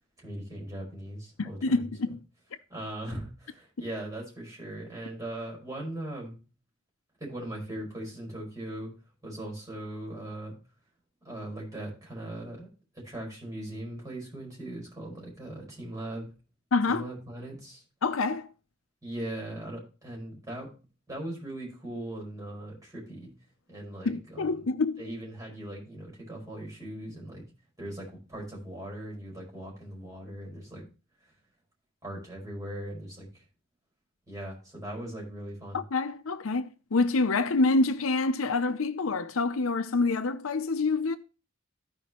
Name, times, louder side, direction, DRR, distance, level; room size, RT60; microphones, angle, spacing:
voice 1, 0.2-1.9 2.7-6.4 7.2-8.9 9.2-10.5 11.2-12.7 13.0-16.3 16.9-17.8 19.0-20.7 21.1-23.3 23.7-24.7 25.0-27.4 27.8-30.9 32.0-33.4 34.3-35.8, right 1 dB, 20° right, 5.1 m, -39 dB
voice 2, 1.4-2.2 16.7-17.1 18.0-18.5 24.1-25.0 35.7-41.2, left 3 dB, 75° left, 0.7 m, -27 dB
15.0 x 5.2 x 3.0 m
head